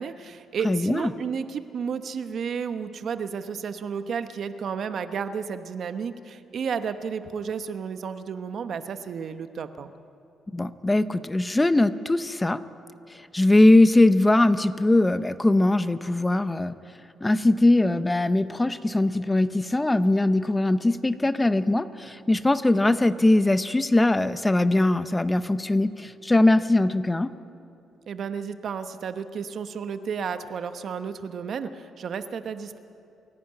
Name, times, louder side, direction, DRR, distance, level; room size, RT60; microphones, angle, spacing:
voice 1, 0.0-9.9 28.1-32.8, right 6 dB, 60° right, 10 dB, 1.0 m, -32 dB
voice 2, 0.6-1.1 10.5-12.6 13.1-16.7 17.2-27.3, left 2 dB, 15° left, 13 dB, 0.7 m, -21 dB
28.0 x 11.5 x 8.9 m, 2.6 s
cardioid pair, 90°, 0 cm